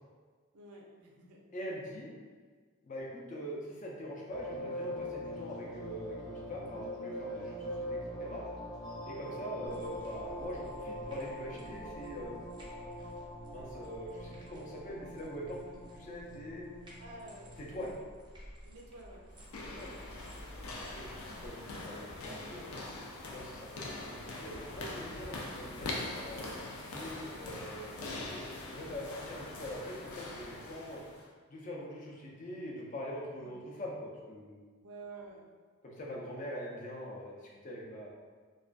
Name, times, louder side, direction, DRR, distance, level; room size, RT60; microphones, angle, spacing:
voice 1, 0.5-1.4 9.1-9.4 17.0-18.1 18.6-19.2 20.8-21.2 22.3-23.0 33.4-33.6 34.8-35.4, right 2 dB, 90° right, -2 dB, 0.5 m, -51 dB
voice 2, 1.5-2.1 2.8-8.4 9.1-12.6 13.5-15.6 15.9-16.6 17.6-17.9 19.8-19.9 20.9-22.8 23.3-23.7 24.0-25.9 26.2-31.0 31.5-34.7 35.8-38.1, equal, 35° left, -3 dB, 0.4 m, -43 dB
sound 1, 4.3-17.9, equal, 20° left, 0.8 m, -43 dB
sound 2, 9.6-21.5, equal, 20° right, 0.4 m, -53 dB
sound 3, 19.3-31.3, left 2 dB, 90° left, 0.4 m, -43 dB
2.3 x 2.2 x 2.4 m, 1.5 s
head